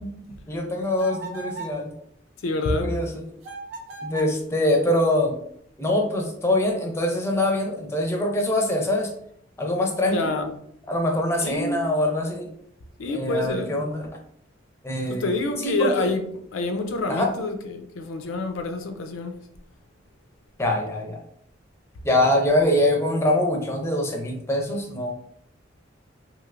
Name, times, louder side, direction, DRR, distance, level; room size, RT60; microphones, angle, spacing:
voice 1, 0.0-1.9 2.8-3.1 4.0-5.3 5.8-9.1 9.6-10.3 10.9-12.5 13.1-14.1 14.8-16.1 17.1-17.3 20.6-21.2 22.0-25.1, left 1 dB, 15° left, 0.5 m, -24 dB
sound 1, 1.0-1.8 3.4-4.4, right 3 dB, 85° right, 0.6 m, -37 dB
voice 2, 2.4-2.9 10.1-10.5 11.4-11.9 13.0-13.7 15.1-16.2 16.5-19.4, left 2 dB, 90° left, 0.4 m, -27 dB
3.1 x 2.8 x 2.4 m
head